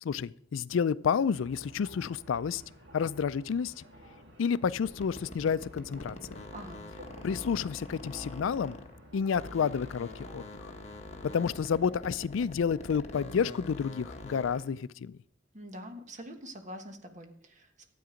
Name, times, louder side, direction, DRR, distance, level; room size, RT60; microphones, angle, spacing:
voice 1, 0.0-2.6 2.9-3.8 4.4-6.4 7.2-8.8 9.1-10.7 11.3-15.2, left 6 dB, 90° left, 18 dB, 0.4 m, -30 dB
sound 1, 1.3-11.8, equal, 65° right, 2.4 m, -53 dB
sound 2, 4.8-9.0 9.3-14.7, left 2 dB, 35° left, 1.0 m, -45 dB
voice 2, 6.5-6.8 15.5-17.9, equal, 40° right, 5 dB, 1.4 m, -45 dB
12.5 x 8.6 x 5.1 m, 0.65 s
head